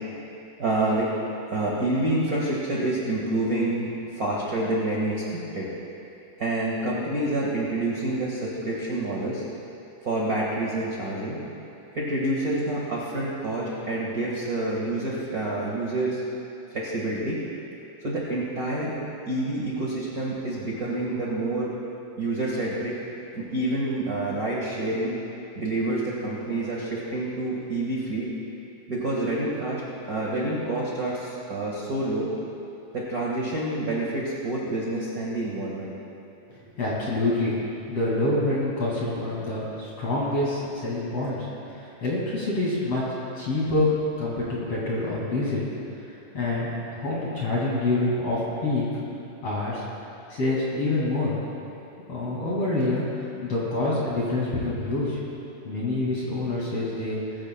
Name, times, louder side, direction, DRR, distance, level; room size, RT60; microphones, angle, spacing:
voice 1, 0.6-1.1 1.5-5.7 6.4-9.4 10.0-11.4 11.9-16.2 16.7-17.4 18.0-18.9 19.3-21.7 22.2-23.0 23.3-25.2 25.5-28.3 28.9-29.8 30.1-32.3 32.9-35.9 50.2-50.3, right 2 dB, 40° right, -5 dB, 1.5 m, -28 dB
voice 2, 36.8-37.6 37.9-41.5 41.7-45.6 46.3-48.9 49.4-49.8 50.3-51.3 52.1-55.2 55.6-57.2, left 2 dB, 50° left, -6 dB, 3.2 m, -26 dB
22.0 x 15.0 x 2.3 m, 2.8 s
omnidirectional pair, 3.8 m